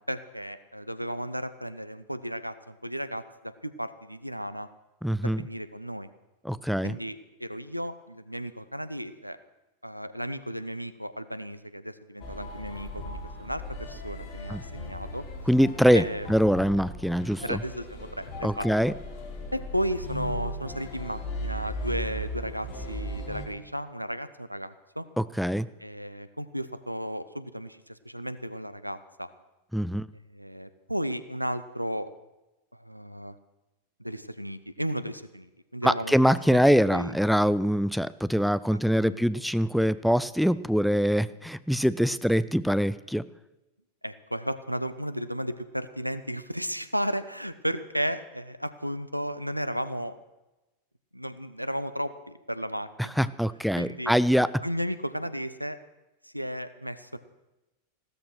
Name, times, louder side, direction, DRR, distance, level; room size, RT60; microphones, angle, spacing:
voice 1, 0.0-4.7 5.2-6.1 6.8-9.4 9.8-15.2 15.9-16.3 17.4-18.7 19.5-25.0 25.8-29.3 30.3-32.1 32.7-33.4 34.0-36.1 36.5-36.6 36.9-37.2 39.0-39.2 44.0-50.2 51.1-53.2 53.8-54.1 54.6-55.8 56.2-57.2, equal, 90° right, 13 dB, 0.8 m, -34 dB
voice 2, 5.0-5.4 6.4-7.0 14.5-14.6 15.5-17.6 18.4-18.9 25.2-25.7 29.7-30.1 35.8-43.3 53.0-54.5, equal, ahead, 16 dB, 0.5 m, -24 dB
sound 1, 12.2-23.5, left 1 dB, 40° left, 3.5 m, -37 dB
15.5 x 13.5 x 6.3 m, 1.0 s
figure-of-eight pair, 90°, 0 cm